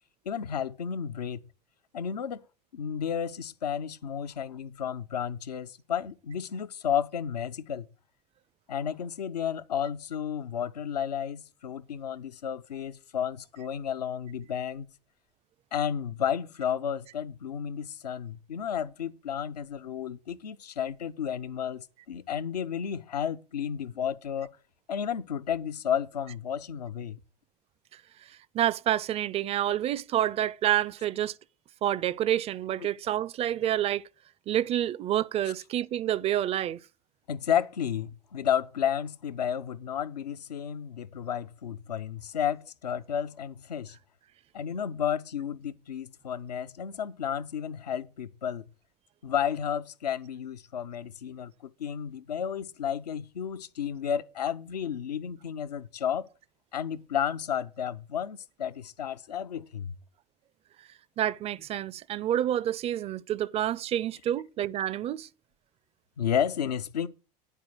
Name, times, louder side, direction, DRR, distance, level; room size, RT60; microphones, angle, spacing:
voice 1, 0.3-1.4 1.9-2.4 2.7-7.9 8.7-14.9 15.7-24.5 24.9-27.2 35.5-35.6 37.3-44.0 44.5-48.6 49.2-56.3 56.7-60.0 66.2-67.1, left 8 dB, 75° left, 0.6 m, -32 dB
voice 2, 28.5-31.3 31.8-34.0 34.5-36.8 61.2-65.3, right 12 dB, 30° right, 0.4 m, -28 dB
10.0 x 4.3 x 7.8 m
figure-of-eight pair, 70°, 21 cm